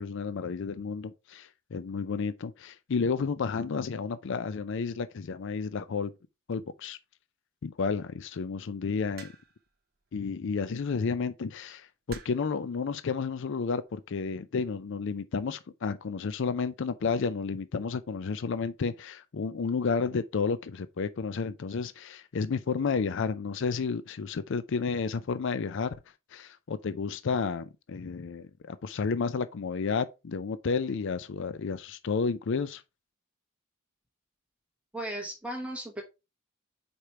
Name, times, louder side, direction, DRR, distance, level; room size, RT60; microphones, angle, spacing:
voice 1, 0.0-6.1 6.5-7.0 7.6-9.3 10.1-25.9 26.3-32.8, left 5 dB, 60° left, 0.4 m, -31 dB
sound 1, 9.2-9.7 10.9-11.2 12.1-12.6 13.5-13.9, right 4 dB, 50° right, 1.0 m, -47 dB
voice 2, 34.9-36.0, right 1 dB, 5° right, 1.1 m, -36 dB
4.9 x 4.4 x 4.6 m
head